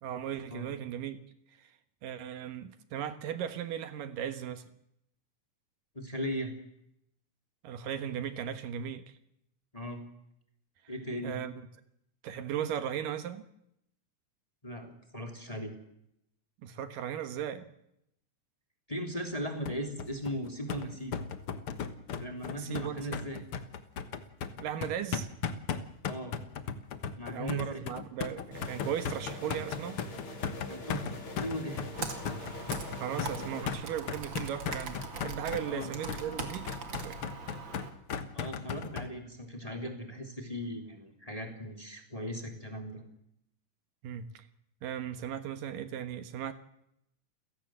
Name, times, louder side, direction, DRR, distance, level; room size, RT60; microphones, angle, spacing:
voice 1, 0.0-1.2 1.6-1.7 2.0-4.6 7.6-9.1 11.2-11.5 12.2-13.5 16.6-17.7 22.6-23.3 24.6-25.3 27.3-30.0 33.0-36.8 37.0-37.2 44.0-44.5 44.8-46.5, right 9 dB, 75° right, 3.0 m, -37 dB
voice 2, 5.9-6.5 9.7-10.0 10.9-11.4 14.6-15.7 18.9-21.2 22.2-23.4 26.0-26.4 27.2-27.8 30.7-31.8 35.6-36.0 38.3-43.0, equal, 10° left, 2.9 m, -38 dB
sound 1, 19.7-39.1, left 7 dB, 55° left, 1.8 m, -37 dB
sound 2, 28.5-33.6, left 1 dB, 35° left, 3.7 m, -44 dB
Computer keyboard, 31.9-37.9, right 4 dB, 40° right, 2.5 m, -41 dB
29.5 x 17.0 x 7.6 m
omnidirectional pair, 3.9 m